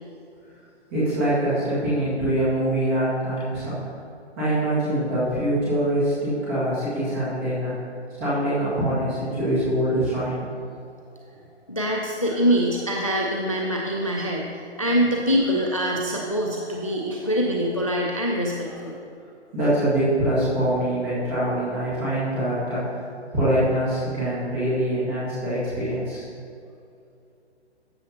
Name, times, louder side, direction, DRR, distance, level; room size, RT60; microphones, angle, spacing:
voice 1, 0.9-3.9 4.4-7.7 8.2-10.4 19.5-23.1 23.3-26.3, right 1 dB, 10° right, -11 dB, 1.8 m, -24 dB
voice 2, 11.7-19.0, equal, 30° left, -1 dB, 0.4 m, -24 dB
13.5 x 7.2 x 2.8 m, 2.5 s
hypercardioid pair, 175°, 35 cm